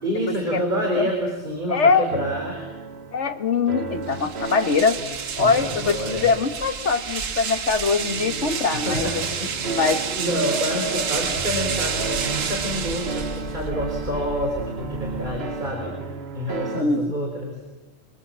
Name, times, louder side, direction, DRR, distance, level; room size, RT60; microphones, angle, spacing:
voice 1, 0.0-2.7 5.4-6.3 8.7-9.8 10.1-16.0 16.3-17.5, equal, 35° right, 1 dB, 4.2 m, -28 dB
voice 2, 1.7-2.1 3.1-5.0 5.4-9.1 9.6-10.0 16.5-17.1, left 4 dB, 60° left, 9 dB, 1.8 m, -22 dB
sound 1, 2.1-16.8, right 4 dB, 50° right, 1.5 m, -34 dB
sound 2, 4.0-13.7, right 6 dB, 80° right, 1.6 m, -30 dB
sound 3, 5.0-15.4, equal, 20° left, 2.4 m, -41 dB
27.0 x 23.5 x 7.5 m, 1.1 s
omnidirectional pair, 1.4 m